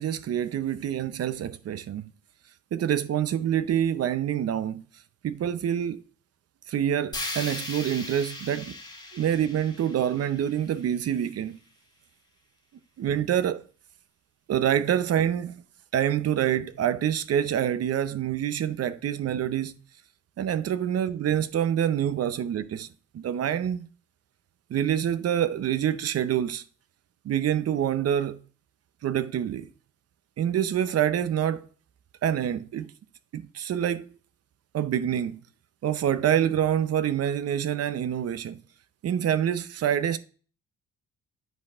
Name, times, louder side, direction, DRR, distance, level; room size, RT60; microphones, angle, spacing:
voice 1, 0.0-2.1 2.7-4.8 5.2-6.0 6.7-8.8 9.1-11.6 13.0-13.6 14.5-15.6 15.9-19.7 20.4-22.9 23.1-23.9 24.7-26.6 27.2-28.4 29.0-29.7 30.4-31.7 32.2-32.9 33.3-34.1 34.7-35.4 35.8-38.6 39.0-40.2, right 10 dB, 55° right, 0.7 m, -26 dB
sound 1, 7.1-11.2, left 2 dB, 15° left, 1.6 m, -38 dB
9.1 x 5.3 x 2.4 m
cardioid pair, 90°, 30 cm